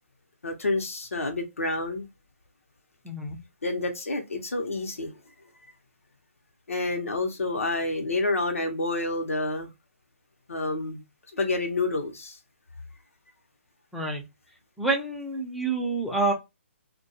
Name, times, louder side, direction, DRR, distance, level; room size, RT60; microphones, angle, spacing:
voice 1, 0.4-2.1 3.6-5.1 6.7-9.7 10.5-11.0 11.3-12.4, left 2 dB, 85° left, 0.7 m, -28 dB
voice 2, 3.0-3.4 13.9-14.2 14.8-16.3, right 3 dB, ahead, 0.5 m, -27 dB
2.2 x 2.2 x 2.6 m
hypercardioid pair, 145°, 7 cm